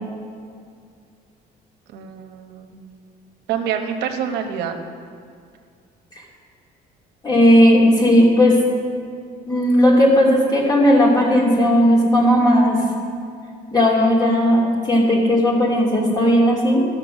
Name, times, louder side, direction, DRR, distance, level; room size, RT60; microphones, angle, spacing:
voice 1, 1.9-2.8 3.5-4.8, right 8 dB, 85° right, 4 dB, 1.0 m, -26 dB
voice 2, 7.2-8.6 9.5-12.8 13.7-16.9, equal, 25° left, -4 dB, 3.0 m, -15 dB
13.0 x 6.7 x 6.3 m, 2.2 s
cardioid pair, 110°, 17 cm